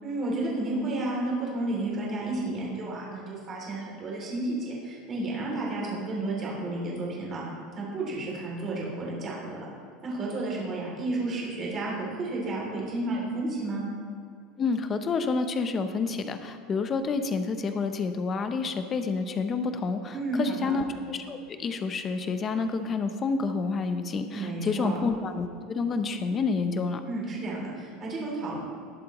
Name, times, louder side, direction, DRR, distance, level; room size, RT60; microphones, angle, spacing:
voice 1, 0.0-7.4 7.7-9.7 10.0-13.8 20.1-20.8 24.3-25.0 27.0-28.6, right 2 dB, 25° right, -4 dB, 2.8 m, -32 dB
voice 2, 14.6-27.0, left 4 dB, 20° left, 8 dB, 0.6 m, -29 dB
19.0 x 7.5 x 3.0 m, 2.3 s
cardioid pair, 175°, 0 cm